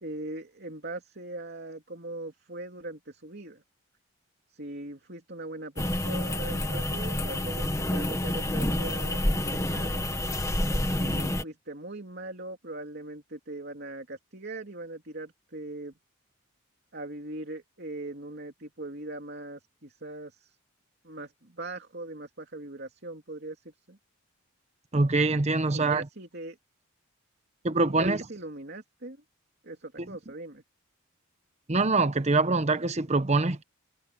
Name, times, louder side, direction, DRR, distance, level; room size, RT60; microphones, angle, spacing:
voice 1, 0.0-3.6 4.5-10.1 11.0-15.9 16.9-20.6 21.0-23.6 23.9-24.0 25.7-26.6 27.8-29.2 29.6-30.6, right 2 dB, 50° right, 3.1 m, -40 dB
sound 1, 5.8-11.4, left 1 dB, 15° left, 1.4 m, -28 dB
voice 2, 24.9-26.0 27.6-28.2 31.7-33.6, right 3 dB, 30° right, 0.9 m, -24 dB
head